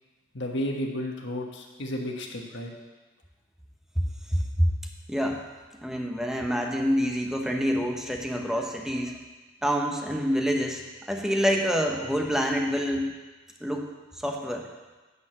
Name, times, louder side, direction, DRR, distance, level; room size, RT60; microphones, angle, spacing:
voice 1, 0.3-2.7, left 1 dB, 65° left, 1 dB, 1.4 m, -32 dB
voice 2, 4.3-4.7 5.1-5.4 5.8-9.2 9.6-13.1 13.6-13.9 14.2-14.7, equal, 5° right, 1 dB, 0.9 m, -27 dB
9.8 x 5.1 x 7.6 m, 1.3 s
head